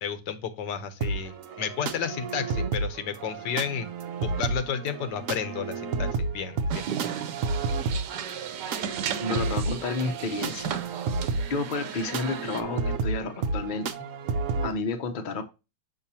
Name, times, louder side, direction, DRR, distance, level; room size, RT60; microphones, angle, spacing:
voice 1, 0.0-3.9 4.2-6.9, left 7 dB, 80° left, 10 dB, 1.5 m, -32 dB
sound 1, 1.0-14.7, right 4 dB, 60° right, 1.0 m, -31 dB
sound 2, 6.7-12.6, right 8 dB, 80° right, 1.4 m, -35 dB
voice 2, 8.7-10.8 11.5-13.9 14.6-15.4, left 3 dB, 40° left, 6 dB, 0.8 m, -31 dB
6.5 x 5.8 x 2.8 m, 0.27 s
omnidirectional pair, 1.8 m